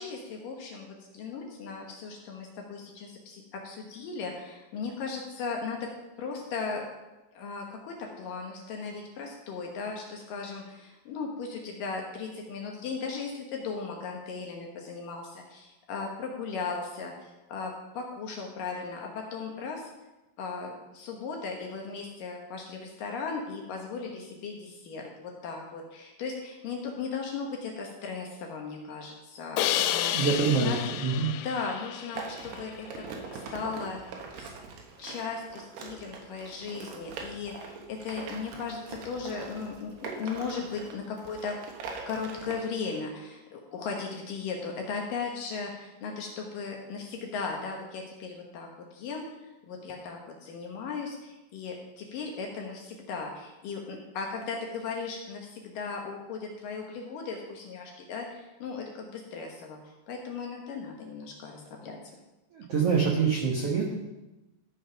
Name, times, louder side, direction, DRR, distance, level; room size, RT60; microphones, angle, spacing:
voice 1, 0.0-5.9 6.2-6.8 7.4-19.9 20.4-30.1 30.6-30.8 31.4-34.5 35.0-41.5 42.1-49.3 49.7-59.8 60.1-62.0, left 5 dB, 65° left, 1 dB, 2.4 m, -37 dB
Crash cymbal, 29.6-32.6, left 12 dB, 90° left, 2.9 m, -31 dB
voice 2, 30.1-31.3 62.5-63.9, right 5 dB, 90° right, -2 dB, 1.3 m, -26 dB
sound 1, 32.1-42.5, right 5 dB, 70° right, 3.3 m, -42 dB
14.0 x 5.5 x 5.7 m, 1.0 s
omnidirectional pair, 5.0 m